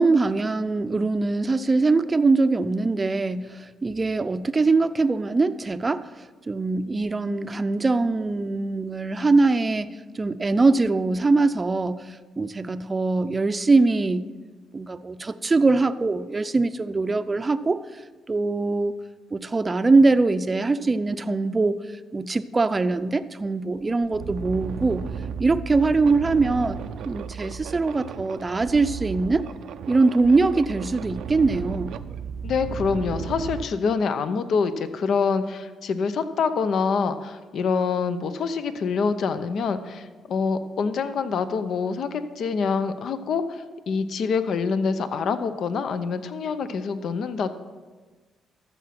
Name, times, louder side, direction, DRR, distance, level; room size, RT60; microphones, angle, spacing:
voice 1, 0.0-6.1 6.5-14.3 14.7-17.8 18.3-18.9 19.3-21.8 22.1-25.1 25.4-26.8 27.0-29.4 29.9-31.9, right 3 dB, 25° right, 12 dB, 0.6 m, -22 dB
sound 1, 23.2-23.3 23.8-33.6, right 7 dB, 75° right, 0.5 m, -34 dB
voice 2, 32.4-47.5, left 5 dB, 65° left, 11 dB, 0.7 m, -26 dB
13.5 x 7.1 x 5.9 m, 1.3 s
cardioid pair, 90°, 0 cm